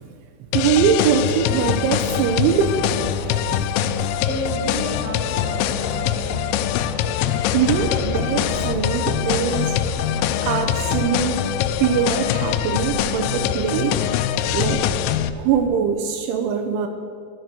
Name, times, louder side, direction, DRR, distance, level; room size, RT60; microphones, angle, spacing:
sound 1, 0.5-15.3, left 12 dB, 85° left, 3.2 m, -23 dB
Fixed-wing aircraft airplane, 0.5-15.6, right 2 dB, 60° right, 2.9 m, -34 dB
voice 1, 0.5-3.2 3.5-4.1 7.5-9.8 10.4-11.5 11.8-14.0 14.5-14.8 15.4-16.9, right 7 dB, 80° right, 5 dB, 3.0 m, -22 dB
voice 2, 4.2-6.3 7.2-7.4 14.5-14.6 15.1-15.2, right 2 dB, 5° left, -4 dB, 1.6 m, -32 dB
14.0 x 12.5 x 6.6 m, 2.2 s
omnidirectional pair, 5.8 m